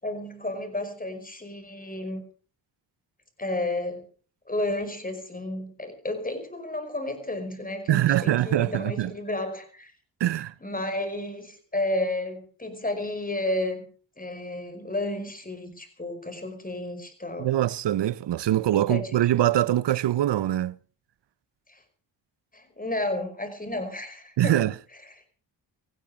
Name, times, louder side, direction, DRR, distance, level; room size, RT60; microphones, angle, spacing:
voice 1, 0.0-2.2 3.4-4.0 4.5-9.9 10.6-13.9 14.2-17.5 18.9-19.1 21.7-21.8 22.5-24.7, left 1 dB, 20° left, 5.3 m, -32 dB
voice 2, 7.9-9.1 10.2-10.5 17.4-20.8 24.4-24.7, right 13 dB, 70° right, 0.8 m, -23 dB
18.5 x 15.5 x 5.0 m
cardioid pair, 70°, 43 cm